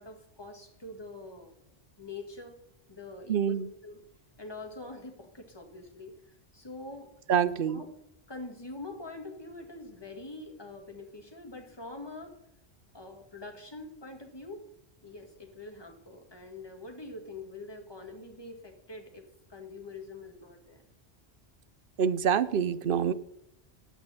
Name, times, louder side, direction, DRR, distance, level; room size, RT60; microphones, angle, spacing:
voice 1, 0.0-1.5 2.0-2.6 2.9-4.0 4.4-6.1 6.5-7.1 7.6-7.9 8.3-12.4 12.9-14.6 15.0-20.8, left 2 dB, 25° left, 3 dB, 1.9 m, -44 dB
voice 2, 3.3-3.7 7.3-7.8 22.0-23.1, right 8 dB, 60° right, 15 dB, 0.8 m, -26 dB
14.5 x 9.1 x 4.2 m, 0.80 s
omnidirectional pair, 1.1 m